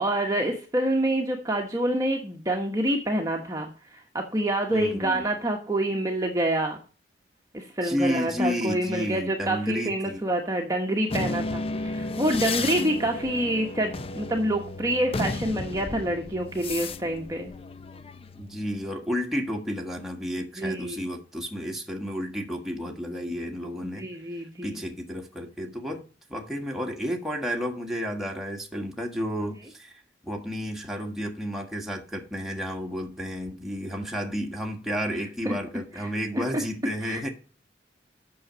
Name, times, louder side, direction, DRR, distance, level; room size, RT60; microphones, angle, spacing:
voice 1, 0.0-6.8 7.5-17.5 20.6-21.0 23.8-24.8 35.4-35.5 35.9-36.4 37.0-37.3, right 1 dB, 20° right, 1.2 m, -27 dB
voice 2, 4.7-5.3 7.8-10.2 12.6-13.0 18.4-24.1 24.6-26.0 26.3-37.3, equal, ahead, 1.5 m, -32 dB
sound 1, 11.1-18.6, left 3 dB, 30° left, 0.5 m, -33 dB
8.7 x 6.5 x 6.1 m
head